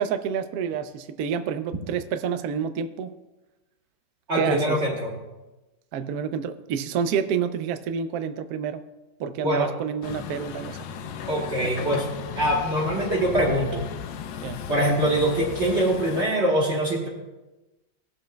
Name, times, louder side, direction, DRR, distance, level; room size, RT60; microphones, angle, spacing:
voice 1, 0.0-3.2 4.4-4.8 5.9-8.8 9.2-10.9 11.6-11.8 14.4-14.7, right 7 dB, 70° right, 10 dB, 0.9 m, -28 dB
voice 2, 4.3-5.2 9.4-9.7 11.3-12.0 12.4-13.9 14.7-17.1, right 1 dB, 40° right, -3 dB, 1.4 m, -23 dB
Truck, 10.0-16.3, left 8 dB, 85° left, 1.4 m, -35 dB
18.5 x 7.3 x 2.2 m, 1.1 s
omnidirectional pair, 2.1 m